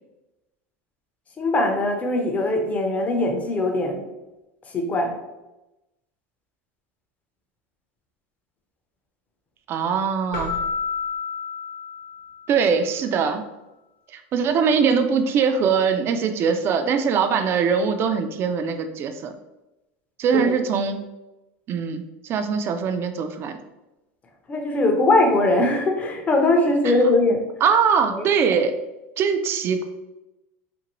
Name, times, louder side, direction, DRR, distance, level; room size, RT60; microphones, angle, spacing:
voice 1, 1.4-4.0 4.7-5.2 20.3-20.6 24.5-27.5 28.1-28.3, left 2 dB, 20° left, 3 dB, 0.6 m, -21 dB
voice 2, 9.7-10.5 12.5-13.4 14.1-19.3 20.2-21.0 21.7-23.6 26.8-26.9 27.6-28.8 29.2-29.8, right 6 dB, 40° right, 7 dB, 0.4 m, -22 dB
Keyboard (musical), 10.3-12.7, left 5 dB, 65° left, 0.9 m, -30 dB
2.8 x 2.6 x 2.9 m, 0.98 s
supercardioid pair, 120°, 7 cm